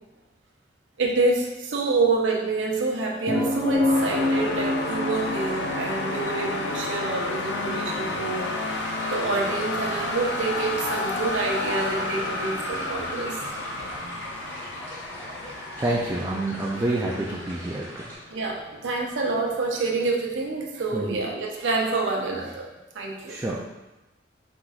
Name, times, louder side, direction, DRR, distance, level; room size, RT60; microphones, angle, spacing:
voice 1, 1.0-8.8 9.1-13.3 18.3-22.7 22.9-23.4, right 3 dB, 85° right, -1 dB, 0.7 m, -27 dB
sound 1, 3.3-17.1 19.4-19.5, left 2 dB, 45° left, 0.9 m, -32 dB
sound 2, 3.9-18.8, left 2 dB, 65° left, 0.5 m, -32 dB
sound 3, 8.7-18.2, right 1 dB, 10° left, 1.1 m, -43 dB
voice 2, 15.8-18.0 20.9-21.2 23.3-23.6, right 2 dB, 15° right, -3 dB, 0.3 m, -28 dB
4.5 x 3.9 x 2.4 m, 1.0 s
head